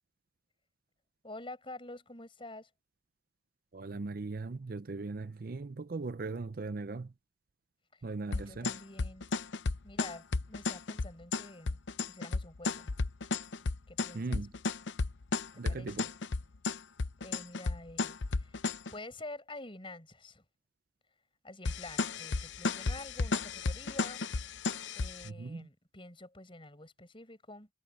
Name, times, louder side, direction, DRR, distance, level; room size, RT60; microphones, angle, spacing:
voice 1, 1.2-2.7 7.9-9.3 9.8-12.9 13.9-14.4 15.7-16.1 17.2-20.4 21.4-24.3 24.9-27.7, left 2 dB, 25° left, 6.2 m, -48 dB
voice 2, 3.7-7.1 8.0-8.7 14.1-14.5 15.6-16.1 25.2-25.7, right 3 dB, 45° right, 0.5 m, -39 dB
sound 1, 8.3-18.9 21.7-25.3, left 3 dB, 65° left, 0.7 m, -33 dB
head